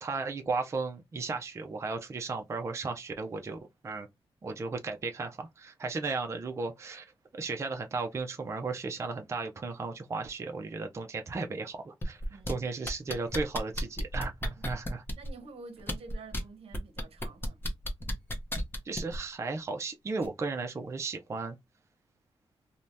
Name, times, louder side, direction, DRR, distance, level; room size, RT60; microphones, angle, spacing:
voice 1, 0.0-4.1 4.4-7.1 7.3-15.0 18.9-21.6, right 4 dB, 25° right, 0.4 m, -35 dB
sound 1, 12.0-12.5 12.9-15.3 15.8-16.4 16.7-19.2 20.2-20.3, left 1 dB, 20° left, 0.7 m, -34 dB
voice 2, 12.3-12.8 14.6-14.7 15.2-17.6, right 4 dB, 70° right, 0.7 m, -49 dB
2.7 x 2.1 x 3.3 m
wide cardioid pair, 125°, 11 cm